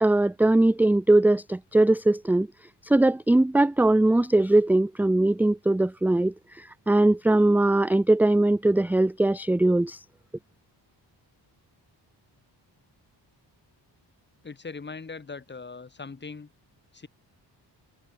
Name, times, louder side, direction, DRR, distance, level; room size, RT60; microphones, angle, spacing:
voice 1, 0.0-2.5 2.9-10.0, right 2 dB, 5° right, 0.5 m, -21 dB
voice 2, 14.4-16.5 16.9-17.1, left 4 dB, 25° left, 2.9 m, -40 dB
wide cardioid pair, 155°, 43 cm